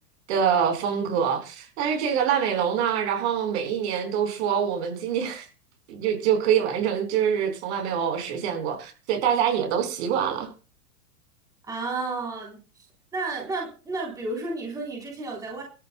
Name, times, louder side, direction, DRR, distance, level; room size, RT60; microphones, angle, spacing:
voice 1, 0.3-5.5 5.9-10.5, right 8 dB, 45° right, 4.5 m, -25 dB
voice 2, 11.7-12.6 13.1-15.6, right 3 dB, 10° right, 3.6 m, -31 dB
22.5 x 14.0 x 2.3 m
supercardioid pair, 175°, 46 cm